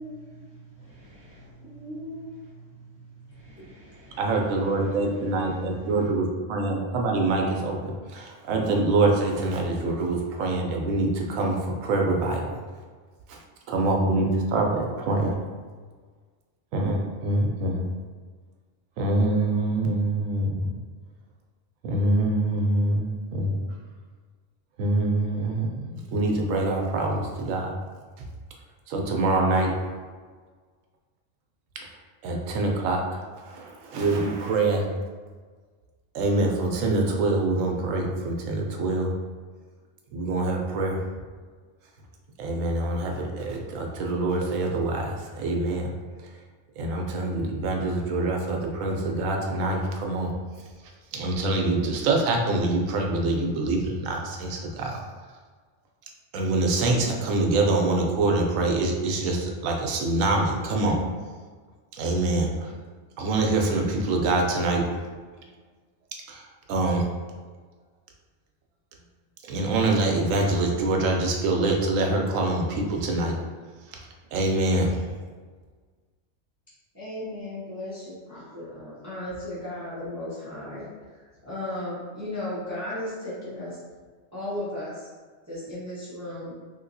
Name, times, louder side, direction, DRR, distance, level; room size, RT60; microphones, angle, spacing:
voice 1, 0.0-4.2, right 3 dB, 35° left, -9 dB, 1.1 m, -49 dB
voice 2, 1.7-2.3 76.9-80.9 81.5-83.8 84.3-84.9 85.5-86.5, left 1 dB, 20° right, -8 dB, 0.5 m, -35 dB
voice 3, 4.2-12.6 13.3-15.4 16.7-17.9 19.0-20.8 21.8-23.6 24.8-27.8 28.2-28.3 28.9-29.9 31.8-34.9 36.1-39.2 40.1-41.1 42.4-46.4 46.8-55.4 56.3-61.0 61.9-62.9 63.2-65.1 66.3-67.1 69.4-75.1, right 2 dB, 85° right, 1 dB, 1.0 m, -25 dB
3.4 x 2.8 x 2.6 m, 1.5 s
omnidirectional pair, 1.4 m